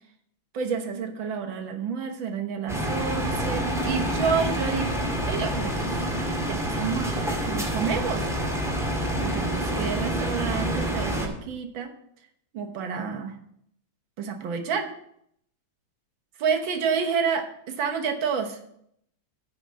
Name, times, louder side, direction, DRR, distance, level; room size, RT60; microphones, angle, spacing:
voice 1, 0.5-6.1 6.5-8.3 9.2-11.9 12.5-13.4 14.2-14.9 16.4-18.7, right 6 dB, 80° right, 4 dB, 1.8 m, -29 dB
sound 1, 2.7-11.3, right 1 dB, ahead, 1.9 m, -27 dB
9.6 x 5.0 x 7.2 m, 0.71 s
omnidirectional pair, 2.1 m